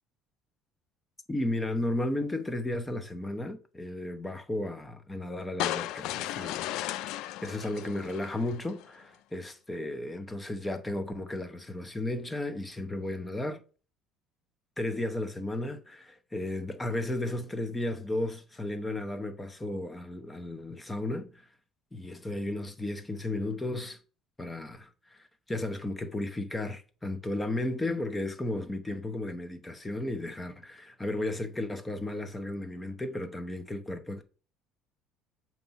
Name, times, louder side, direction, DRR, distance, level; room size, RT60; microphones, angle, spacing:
voice 1, 1.3-6.7 7.1-13.6 14.8-21.5 21.9-24.0 24.4-34.2, left 1 dB, 10° left, 0.8 m, -34 dB
sound 1, 5.6-8.8, left 14 dB, 70° left, 0.3 m, -35 dB
6.7 x 3.0 x 5.4 m
cardioid pair, 135°, 0 cm